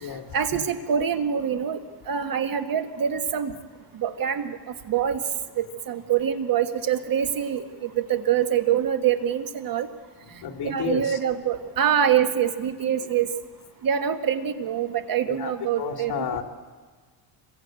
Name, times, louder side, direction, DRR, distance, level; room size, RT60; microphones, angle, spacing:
voice 1, 0.3-1.8 2.1-3.5 3.9-4.6 4.9-5.2 5.6-9.9 10.6-13.3 13.8-16.3, right 9 dB, 45° right, 8 dB, 1.7 m, -25 dB
voice 2, 10.4-11.2 15.3-16.4, left 7 dB, 50° left, 4 dB, 2.9 m, -31 dB
26.5 x 22.5 x 9.0 m, 1.5 s
cardioid pair, 140°, 48 cm